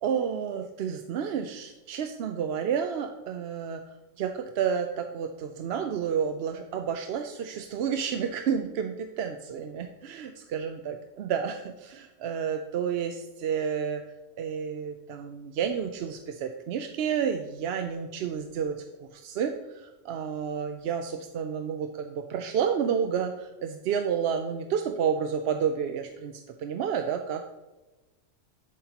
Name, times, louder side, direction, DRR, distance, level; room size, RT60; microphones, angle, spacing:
voice 1, 0.0-3.8 4.2-14.0 14.4-18.8 19.1-27.4, right 7 dB, 65° right, 6 dB, 0.7 m, -30 dB
10.5 x 8.6 x 2.9 m, 1.1 s
omnidirectional pair, 1.3 m